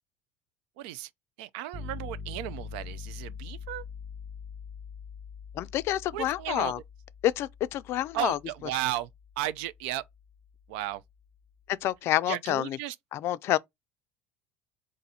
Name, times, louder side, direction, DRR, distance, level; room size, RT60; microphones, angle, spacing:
voice 1, 0.8-1.1 1.4-3.8 6.1-6.7 8.1-9.1 9.4-10.0 10.7-11.0 12.3-12.9, right 13 dB, 90° right, 0.4 m, -34 dB
sound 1, 1.7-11.6, left 5 dB, 20° right, 0.6 m, -44 dB
voice 2, 5.5-6.8 7.2-8.4 11.7-12.8 13.1-13.6, left 13 dB, 55° left, 0.3 m, -28 dB
4.0 x 2.6 x 4.1 m
cardioid pair, 130°, 5 cm